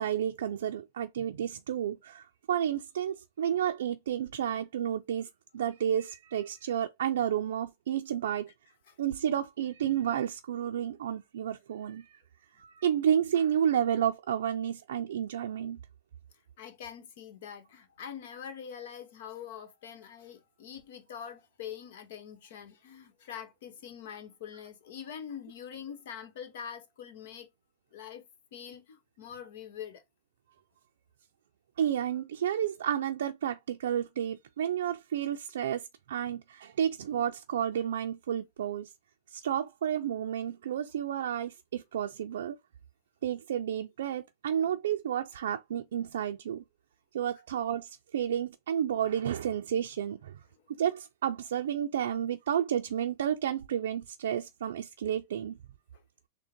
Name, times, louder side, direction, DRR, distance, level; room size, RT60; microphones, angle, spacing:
voice 1, 0.0-5.3 5.5-8.5 9.0-12.2 12.6-15.8 31.8-38.9 39.3-42.6 43.2-46.6 47.1-50.4 50.7-55.6, right 9 dB, 80° right, 0.4 m, -31 dB
voice 2, 16.6-27.5 27.9-28.2 28.5-30.0 55.9-56.0, left 8 dB, 70° left, 1.1 m, -44 dB
3.7 x 2.1 x 4.3 m
hypercardioid pair, 125°, 0 cm